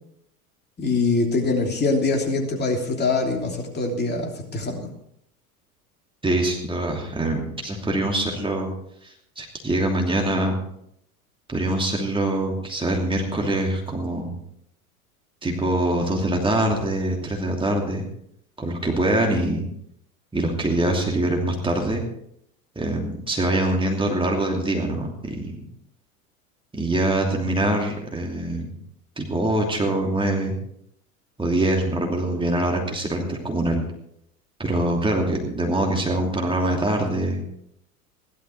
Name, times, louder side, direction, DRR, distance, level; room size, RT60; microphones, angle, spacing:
voice 1, 0.8-4.9, left 3 dB, 20° left, 1 dB, 3.2 m, -23 dB
voice 2, 6.2-8.7 9.0-10.6 11.5-14.3 15.4-18.0 18.6-19.6 20.3-22.0 22.8-25.6 26.7-28.7 29.2-30.5 31.4-33.8 34.6-37.4, right 1 dB, 10° right, 0 dB, 2.8 m, -24 dB
16.5 x 12.0 x 4.6 m, 0.73 s
hypercardioid pair, 90°, 45 cm